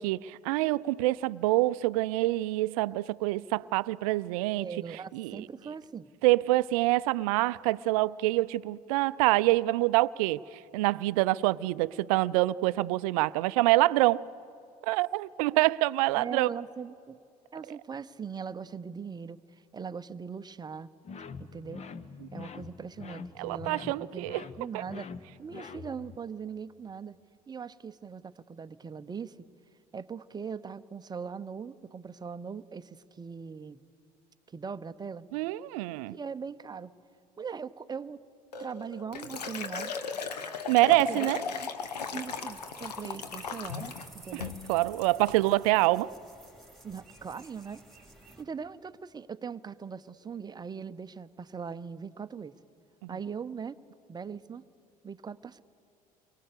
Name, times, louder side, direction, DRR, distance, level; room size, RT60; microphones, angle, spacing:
voice 1, 0.0-4.7 5.1-5.5 6.2-14.2 14.8-16.5 22.2-22.3 23.4-24.4 24.7-24.8 35.3-36.1 40.7-41.4 44.3-46.1 53.0-53.1, right 19 dB, 60° right, 0.5 m, -26 dB
voice 2, 4.6-6.1 16.2-17.2 17.5-20.9 21.4-21.9 22.3-25.1 25.4-27.2 27.5-29.5 29.9-33.8 34.5-35.3 36.1-36.9 37.4-38.2 38.6-39.9 41.1-41.3 41.6-41.7 42.1-44.5 46.8-47.8 48.4-52.5 53.1-53.8 54.1-54.6 55.0-55.6, right 6 dB, 20° right, 0.8 m, -40 dB
sound 1, 21.0-26.2, left 5 dB, 35° left, 1.1 m, -44 dB
Liquid, 38.5-44.1 44.4-44.7 45.0-45.4, left 5 dB, 80° left, 1.1 m, -37 dB
sound 2, 41.8-48.4, right 1 dB, ahead, 3.5 m, -53 dB
29.5 x 23.0 x 6.9 m
figure-of-eight pair, 60°, 21 cm